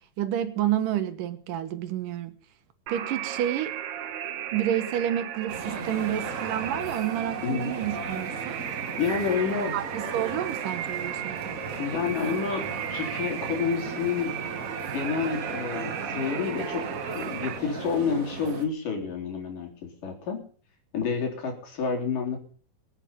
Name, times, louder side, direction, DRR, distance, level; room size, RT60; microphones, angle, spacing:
voice 1, 0.2-2.3 2.9-3.8 4.5-8.6 9.7-11.6, right 11 dB, 90° right, 2.9 m, -29 dB
sound 1, 2.9-17.6, right 9 dB, 65° right, 2.5 m, -35 dB
sound 2, 5.5-18.6, right 3 dB, 30° right, 2.0 m, -38 dB
voice 2, 9.0-9.7 11.8-12.7 12.9-14.3 14.9-16.8 17.1-20.4 20.9-22.4, left 6 dB, 80° left, 5.2 m, -29 dB
22.5 x 9.0 x 5.7 m
omnidirectional pair, 3.7 m